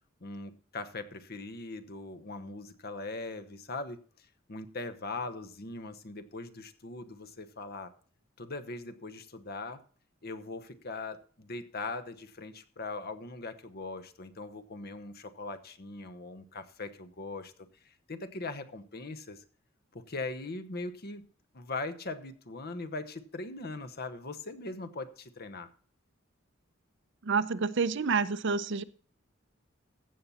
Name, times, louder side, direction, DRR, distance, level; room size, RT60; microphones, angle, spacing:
voice 1, 0.2-7.9 8.4-9.8 10.2-17.5 17.8-19.4 19.9-21.3 21.5-25.7, left 3 dB, 50° left, 10 dB, 1.0 m, -40 dB
voice 2, 27.2-28.8, right 5 dB, 60° right, 14 dB, 0.6 m, -28 dB
15.5 x 7.1 x 4.2 m, 0.44 s
head